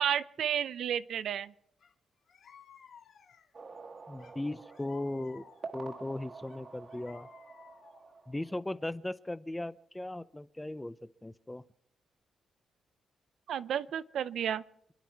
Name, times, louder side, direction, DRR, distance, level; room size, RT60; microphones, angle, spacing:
voice 1, 0.0-1.5 13.5-14.6, right 9 dB, 70° right, 14 dB, 0.6 m, -32 dB
sound 1, 1.8-1.9 2.3-3.6 4.2-5.9 6.5-8.2, left 7 dB, 65° left, 1.7 m, -57 dB
Water Drops, 3.5-8.9, right 4 dB, 35° right, 1.4 m, -48 dB
voice 2, 4.1-5.5 5.7-7.3 8.3-11.6, left 1 dB, 10° left, 15 dB, 0.5 m, -38 dB
27.5 x 11.0 x 4.6 m, 0.70 s
cardioid pair, 140°, 0 cm